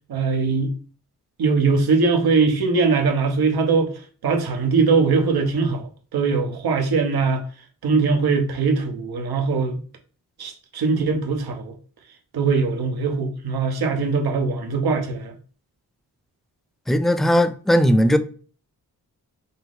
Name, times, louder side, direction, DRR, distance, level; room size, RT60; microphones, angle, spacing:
voice 1, 0.1-0.7 1.4-3.9 4.2-7.4 7.8-9.8 10.4-11.7 12.3-15.3, right 4 dB, 80° right, 1.0 m, -21 dB
voice 2, 16.9-18.2, equal, ahead, 0.4 m, -17 dB
5.4 x 2.0 x 3.8 m
cardioid pair, 75°, 37 cm